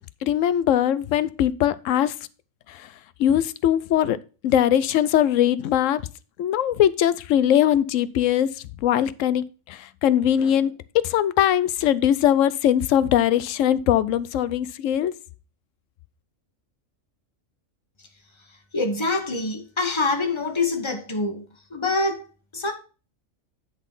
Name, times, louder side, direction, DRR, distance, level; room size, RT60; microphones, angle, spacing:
voice 1, 0.2-2.1 3.2-4.2 4.4-6.0 6.4-8.5 8.8-9.4 10.0-15.1, left 10 dB, 75° left, 0.9 m, -21 dB
voice 2, 18.4-22.2 22.5-22.7, left 3 dB, 25° left, 1.2 m, -26 dB
10.0 x 4.0 x 5.4 m
omnidirectional pair, 1.3 m